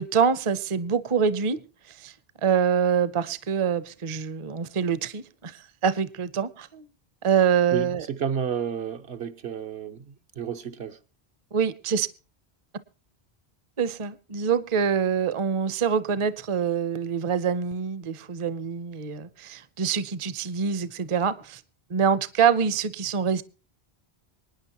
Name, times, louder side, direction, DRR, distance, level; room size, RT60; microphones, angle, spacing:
voice 1, 0.0-1.6 1.9-2.1 2.4-6.8 7.2-8.1 11.5-12.1 13.8-21.6 21.9-23.4, right 7 dB, 35° right, 0.6 m, -25 dB
voice 2, 7.7-11.0, right 8 dB, 75° right, 1.2 m, -31 dB
25.0 x 9.7 x 2.9 m
omnidirectional pair, 1.1 m